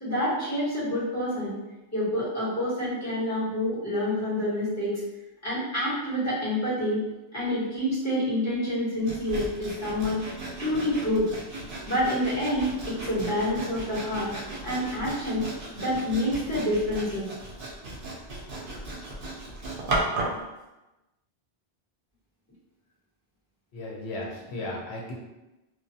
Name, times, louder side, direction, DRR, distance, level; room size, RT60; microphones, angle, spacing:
voice 1, 0.0-1.6 1.9-5.0 5.4-7.0 7.3-10.2 10.6-11.3 11.8-14.3 14.6-15.5 15.7-17.3, left 1 dB, 15° left, -11 dB, 1.1 m, -27 dB
Sawing, 9.1-20.4, right 2 dB, 65° right, 0.7 m, -35 dB
voice 2, 23.7-25.1, left 2 dB, 85° left, -4 dB, 0.9 m, -35 dB
2.3 x 2.2 x 2.6 m, 1.0 s
omnidirectional pair, 1.1 m